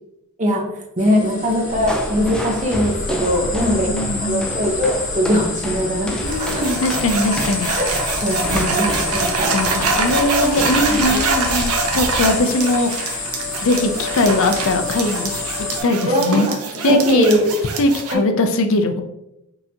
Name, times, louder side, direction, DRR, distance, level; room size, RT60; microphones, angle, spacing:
sound 1, 1.0-15.8, left 3 dB, 40° left, 1.0 m, -29 dB
voice 1, 1.0-3.9 4.2-6.7 7.8-7.9 8.2-9.6 10.4-11.2 16.1-16.6 16.8-17.5 18.1-18.2, equal, 35° right, 0 dB, 0.9 m, -20 dB
sound 2, 1.7-12.5, equal, 5° left, 0.3 m, -29 dB
voice 2, 3.6-4.5 6.2-7.7 8.4-8.9 9.2-13.3 13.6-15.3 15.8-16.5 16.8-17.3 17.8-19.0, left 2 dB, 65° left, 7 dB, 0.5 m, -21 dB
sound 3, 6.3-18.1, right 3 dB, 80° right, 0.7 m, -24 dB
5.4 x 2.7 x 2.8 m, 0.86 s
head